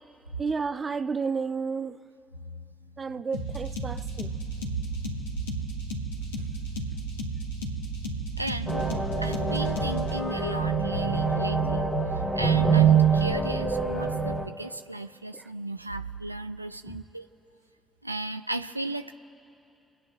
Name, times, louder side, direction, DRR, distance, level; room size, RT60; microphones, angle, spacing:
voice 1, 0.4-2.0 3.0-4.3, right 5 dB, 35° right, 12 dB, 0.7 m, -31 dB
sound 1, 3.3-10.2, right 2 dB, 80° left, 2.2 m, -34 dB
voice 2, 8.4-8.8 9.2-11.8 12.4-17.3 18.0-19.1, right 2 dB, 90° right, 9 dB, 0.3 m, -35 dB
sound 2, 8.7-14.5, right 5 dB, 30° left, 2.6 m, -25 dB
30.0 x 10.0 x 4.1 m, 2.8 s
figure-of-eight pair, 40°, 0 cm